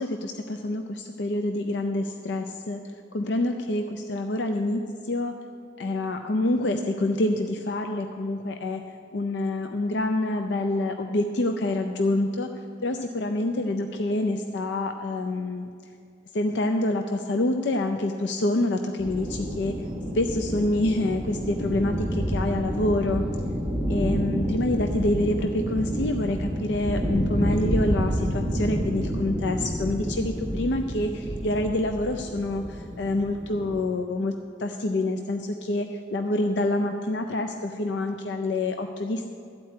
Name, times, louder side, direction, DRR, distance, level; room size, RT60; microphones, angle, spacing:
voice 1, 0.0-2.8 3.1-5.3 5.8-8.8 9.1-12.5 12.8-15.7 16.3-19.7 20.1-23.2 23.9-39.3, left 2 dB, 70° left, 5 dB, 0.5 m, -27 dB
sound 1, 19.0-33.8, equal, 10° right, 1.1 m, -29 dB
13.5 x 4.5 x 8.5 m, 2.3 s
head